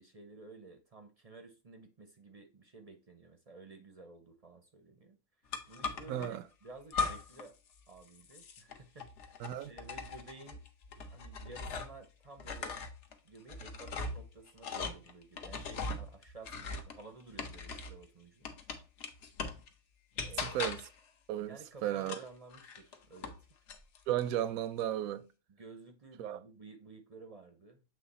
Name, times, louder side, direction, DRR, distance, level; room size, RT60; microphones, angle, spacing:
voice 1, 0.0-5.2 5.7-7.5 7.9-10.6 11.1-12.8 13.2-18.5 20.2-20.6 21.4-23.4 25.6-27.8, right 3 dB, 40° right, 0.5 m, -53 dB
sound 1, 5.5-6.3 6.9-7.5 7.8-12.1 12.4-18.0 18.4-19.7 20.2-21.0 22.0-23.4 23.7-24.3, left 4 dB, 60° left, 1.0 m, -40 dB
voice 2, 6.1-6.4 9.4-9.7 20.4-20.8 21.3-22.2 24.1-25.3 26.2-26.4, right 12 dB, 80° right, 1.0 m, -34 dB
7.5 x 3.1 x 4.1 m
omnidirectional pair, 1.5 m